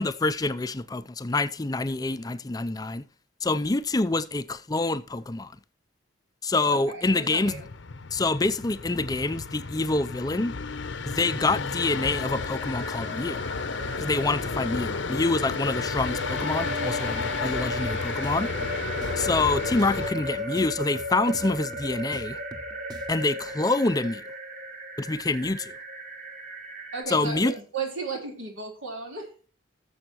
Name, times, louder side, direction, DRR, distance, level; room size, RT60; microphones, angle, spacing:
voice 1, 0.0-3.1 3.4-5.5 6.4-7.6 8.1-10.5 11.1-13.4 14.0-18.5 19.2-22.4 23.1-24.2 25.0-25.7 27.1-27.5, left 3 dB, 20° left, 0.4 m, -26 dB
voice 2, 6.7-7.7 26.9-29.3, right 4 dB, 85° right, 3.8 m, -34 dB
sound 1, 7.4-20.1, left 4 dB, 65° left, 0.7 m, -32 dB
sound 2, 12.3-27.0, equal, 40° right, 2.2 m, -36 dB
sound 3, 17.1-23.3, right 1 dB, 20° right, 0.9 m, -46 dB
18.0 x 7.1 x 3.0 m
head